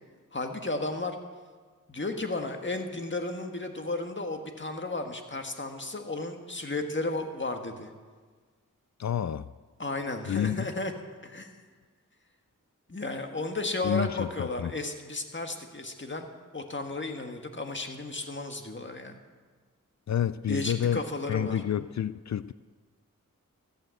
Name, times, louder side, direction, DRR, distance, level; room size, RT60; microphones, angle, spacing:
voice 1, 0.3-1.2 1.9-7.9 9.8-10.9 11.2-11.5 12.9-19.2 20.5-21.6, left 2 dB, 35° left, 1.7 m, -34 dB
voice 2, 9.0-9.5 10.3-10.7 13.8-14.7 20.1-22.5, left 9 dB, 55° left, 0.4 m, -29 dB
14.5 x 9.0 x 7.8 m
cardioid pair, 50°, 33 cm